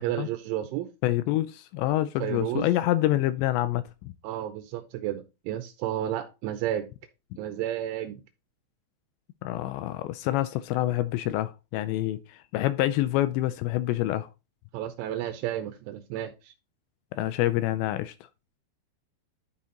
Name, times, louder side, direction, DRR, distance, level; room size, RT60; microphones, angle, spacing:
voice 1, 0.0-0.9 2.2-2.7 4.2-6.9 7.4-8.2 14.7-16.5, right 12 dB, 85° right, 3.2 m, -32 dB
voice 2, 1.0-4.1 9.4-14.3 17.1-18.1, left 15 dB, 85° left, 2.6 m, -27 dB
12.0 x 4.3 x 3.8 m
omnidirectional pair, 5.4 m